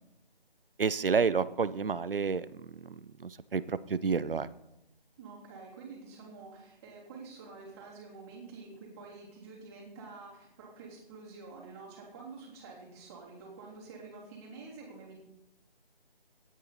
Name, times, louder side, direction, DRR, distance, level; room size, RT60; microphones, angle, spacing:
voice 1, 0.8-4.5, right 5 dB, 65° right, 16 dB, 0.8 m, -30 dB
voice 2, 5.2-15.2, right 4 dB, 15° right, -6 dB, 3.3 m, -48 dB
18.0 x 9.3 x 4.2 m, 0.88 s
figure-of-eight pair, 160°, 30 cm